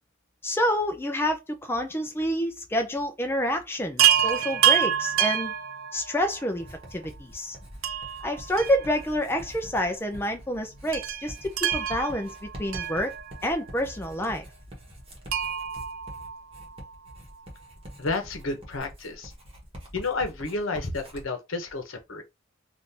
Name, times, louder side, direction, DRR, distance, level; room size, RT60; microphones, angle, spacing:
voice 1, 0.4-5.5 5.9-6.7 6.9-7.6 8.2-13.1 13.4-14.4, equal, 10° left, 0.4 m, -28 dB
Chime, 4.0-6.4 7.8-9.4 9.6-9.7 10.9-13.6 15.3-16.9 18.5-18.6 18.8-18.9, right 10 dB, 80° right, 0.5 m, -27 dB
Writing, 6.6-21.3, equal, 30° right, 1.3 m, -45 dB
voice 2, 18.0-19.3 19.9-22.2, left 3 dB, 75° left, 0.9 m, -31 dB
3.6 x 2.5 x 2.7 m
head